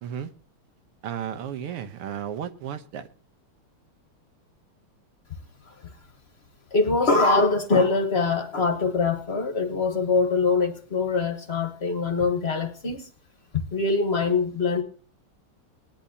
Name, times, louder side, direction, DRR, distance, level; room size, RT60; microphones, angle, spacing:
voice 1, 1.0-3.1, right 9 dB, 85° right, 1.9 m, -33 dB
voice 2, 6.7-13.0 13.7-14.8, left 3 dB, 40° left, 1.0 m, -23 dB
19.5 x 10.5 x 2.8 m
omnidirectional pair, 2.4 m